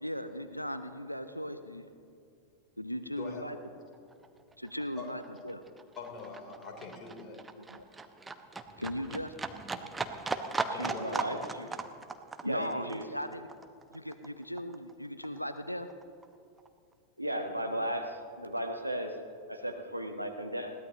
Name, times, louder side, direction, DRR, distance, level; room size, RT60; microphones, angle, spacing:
voice 1, 0.0-1.9 2.8-3.6 4.6-5.6 7.5-7.8 8.8-9.3 12.4-13.5 13.9-15.9, equal, 90° left, 11 dB, 0.6 m, -38 dB
Livestock farm animals working animals, 3.5-3.7 3.9-14.9 15.2-16.3 16.6-16.7, right 3 dB, 10° right, 0.8 m, -38 dB
voice 2, 6.0-7.4 10.7-11.3, left 4 dB, 30° left, 0 dB, 3.6 m, -43 dB
voice 3, 10.7-11.7 12.4-13.1 17.2-19.2 19.5-20.7, equal, 90° right, 5 dB, 1.2 m, -35 dB
21.5 x 17.0 x 3.0 m, 2.5 s
figure-of-eight pair, 90°, 0 cm